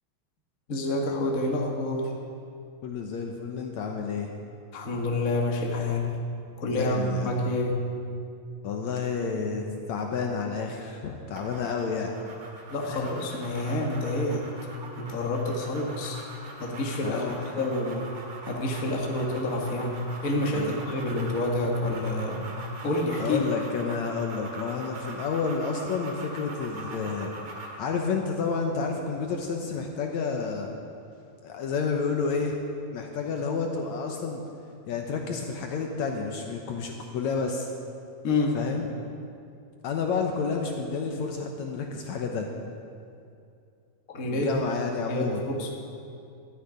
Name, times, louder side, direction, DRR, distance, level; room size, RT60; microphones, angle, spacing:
voice 1, 0.7-2.1 4.7-6.2 6.6-7.9 12.7-14.5 15.0-16.2 16.6-17.2 17.5-18.1 18.5-22.5 22.8-23.4 38.2-38.6 44.1-44.6 45.1-45.7, left 1 dB, 55° left, 0 dB, 0.9 m, -28 dB
voice 2, 2.8-4.3 6.7-7.3 8.6-12.1 12.9-13.1 17.0-17.5 20.5-20.8 23.2-27.3 27.8-30.7 31.4-32.6 32.9-34.4 34.9-37.7 38.5-38.9 39.8-42.5 44.2-45.4, left 5 dB, 70° left, 3 dB, 1.7 m, -30 dB
sound 1, 11.4-27.9, right 2 dB, 55° right, 3.0 m, -42 dB
12.5 x 10.0 x 9.9 m, 2.5 s
omnidirectional pair, 4.4 m